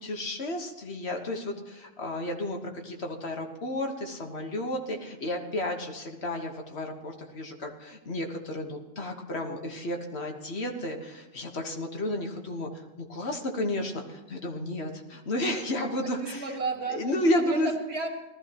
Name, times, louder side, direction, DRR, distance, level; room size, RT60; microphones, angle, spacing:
voice 1, 0.0-12.7 13.0-16.4 16.9-17.7, left 1 dB, 80° left, 3 dB, 1.6 m, -32 dB
voice 2, 15.8-17.0 17.4-18.1, right 3 dB, 85° right, 1 dB, 2.1 m, -33 dB
19.0 x 13.5 x 3.0 m, 1.1 s
omnidirectional pair, 1.1 m